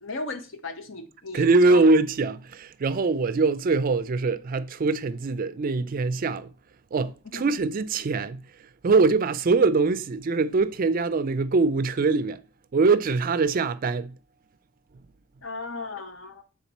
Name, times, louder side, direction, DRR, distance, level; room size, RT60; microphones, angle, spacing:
voice 1, 0.0-1.8 7.2-7.4 15.4-16.4, left 3 dB, 65° left, 0.9 m, -36 dB
voice 2, 1.3-6.5 6.9-8.4 8.8-12.4 12.7-14.1, right 3 dB, 40° right, 0.4 m, -23 dB
7.1 x 3.7 x 4.1 m
head